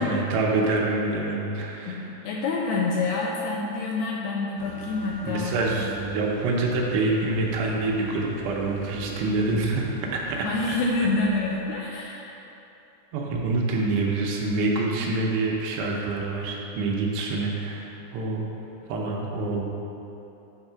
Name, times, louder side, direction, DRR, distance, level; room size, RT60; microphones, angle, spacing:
voice 1, 0.0-2.1 5.3-10.5 13.1-18.4 18.9-19.6, right 2 dB, 80° right, -2 dB, 2.8 m, -26 dB
voice 2, 1.9-5.5 10.4-12.3, left 3 dB, 80° left, -2 dB, 2.4 m, -27 dB
sound 1, 4.6-11.6, right 1 dB, 65° right, 2.2 m, -42 dB
8.9 x 3.5 x 5.6 m, 3.0 s
omnidirectional pair, 5.1 m